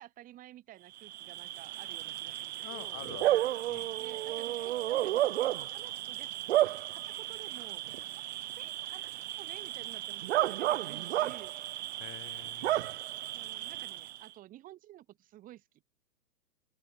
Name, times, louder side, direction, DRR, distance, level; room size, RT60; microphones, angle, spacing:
voice 1, 0.0-3.0 4.0-7.8 8.4-11.5 13.3-15.7, right 14 dB, 15° right, 1.0 m, -52 dB
Bark / Cricket, 1.0-14.3, right 14 dB, 45° right, 0.4 m, -33 dB
voice 2, 2.6-3.9 12.0-13.0, left 21 dB, 25° left, 2.0 m, -48 dB
open air
hypercardioid pair, 145°, 49 cm